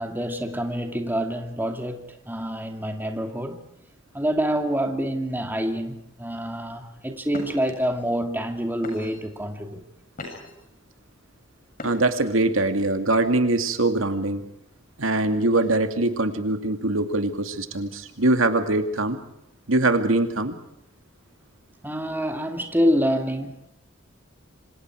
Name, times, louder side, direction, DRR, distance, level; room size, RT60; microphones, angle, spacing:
voice 1, 0.0-3.6 4.1-9.8 21.8-23.7, equal, 10° right, 2.4 m, -27 dB
sound 1, 7.3-7.7 8.4-8.5 8.8-9.3 9.8-10.6 11.7-12.3, left 2 dB, 45° left, 7.5 m, -39 dB
voice 2, 11.8-14.4 15.0-19.2 19.7-20.6, right 2 dB, 85° right, 2.4 m, -22 dB
27.0 x 26.0 x 4.8 m
head